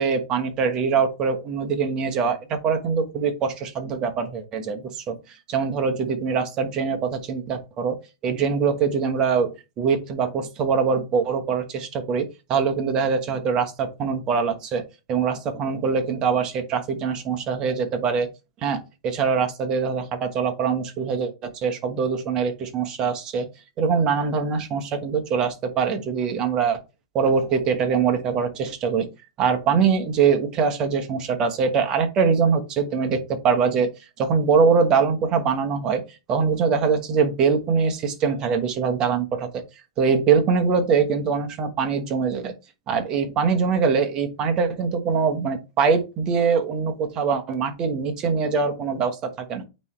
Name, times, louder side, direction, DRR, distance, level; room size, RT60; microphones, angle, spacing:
voice 1, 0.0-14.8 15.1-18.3 18.6-23.5 23.8-26.8 27.1-29.1 29.4-36.0 36.3-39.6 40.0-42.5 42.9-49.6, right 5 dB, 35° right, 5 dB, 1.3 m, -23 dB
9.1 x 3.2 x 3.3 m, 0.28 s
hypercardioid pair, 110°, 2 cm